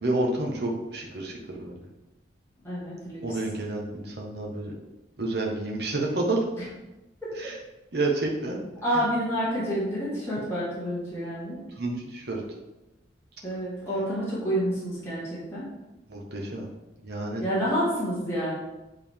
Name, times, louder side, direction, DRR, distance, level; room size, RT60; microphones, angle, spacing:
voice 1, 0.0-1.7 3.2-4.7 5.2-6.4 7.3-7.6 7.9-8.6 8.9-9.0 11.7-12.4 16.1-16.7 17.0-17.4, right 2 dB, 60° right, -1 dB, 1.3 m, -29 dB
voice 2, 2.6-3.2 8.8-11.6 13.4-15.6 17.4-18.5, equal, 15° left, -10 dB, 2.2 m, -28 dB
8.7 x 4.0 x 3.6 m, 1.0 s
head